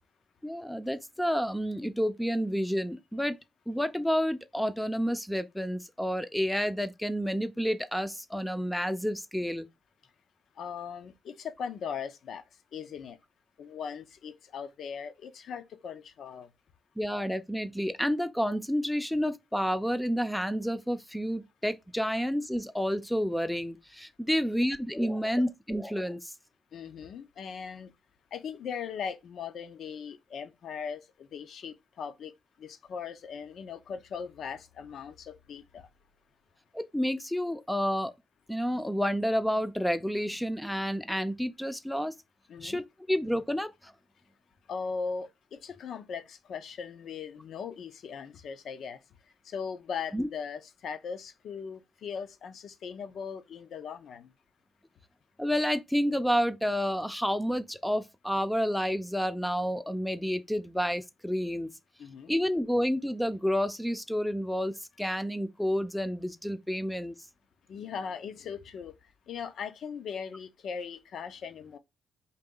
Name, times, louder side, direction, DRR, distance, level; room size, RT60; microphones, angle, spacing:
voice 1, 0.4-3.4 3.7-9.7 17.0-26.3 36.7-38.1 38.5-42.1 42.6-42.8 43.1-43.9 50.1-50.3 55.4-61.7 62.3-67.1, equal, 5° left, 0.5 m, -30 dB
voice 2, 10.6-12.4 12.7-13.2 13.6-16.5 26.7-27.9 28.3-32.3 32.6-35.9 42.5-42.8 44.7-49.0 49.4-54.3 62.0-62.3 67.7-68.9 69.3-71.8, left 6 dB, 65° left, 0.6 m, -39 dB
4.0 x 2.7 x 3.8 m
cardioid pair, 90°, 0 cm